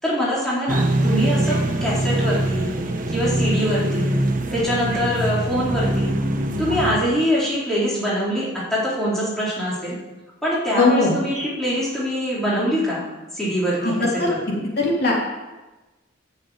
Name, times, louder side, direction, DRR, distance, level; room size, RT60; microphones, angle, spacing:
voice 1, 0.0-2.7 3.1-4.2 4.5-6.2 6.6-10.0 10.4-13.0 13.3-13.9 14.2-14.3, equal, ahead, -9 dB, 4.2 m, -23 dB
sound 1, 0.7-6.9, right 1 dB, 45° right, 1.1 m, -23 dB
voice 2, 10.7-11.1 13.8-14.3 14.8-15.1, left 3 dB, 55° left, -4 dB, 3.2 m, -19 dB
11.0 x 7.5 x 8.9 m, 1.1 s
head